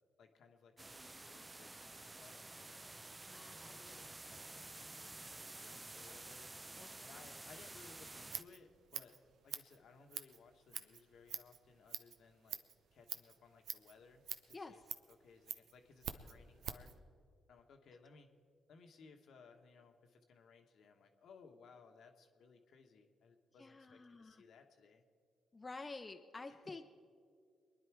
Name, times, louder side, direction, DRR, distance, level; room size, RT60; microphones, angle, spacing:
voice 1, 0.2-3.0 3.6-6.5 7.0-9.2 9.4-12.6 12.9-14.8 15.1-16.9 17.5-18.3 18.7-25.0 26.6-26.8, left 5 dB, 70° left, 5 dB, 1.3 m, -62 dB
sound 1, 0.8-8.4, right 2 dB, 25° right, 0.6 m, -51 dB
voice 2, 3.3-3.8 6.8-6.9 14.5-14.8 23.6-24.4 25.5-26.8, left 3 dB, 30° left, 5 dB, 0.8 m, -50 dB
Scissors, 8.0-17.0, right 8 dB, 70° right, 0.7 m, -48 dB
23.0 x 10.0 x 4.7 m, 2.1 s
hypercardioid pair, 45°, 0 cm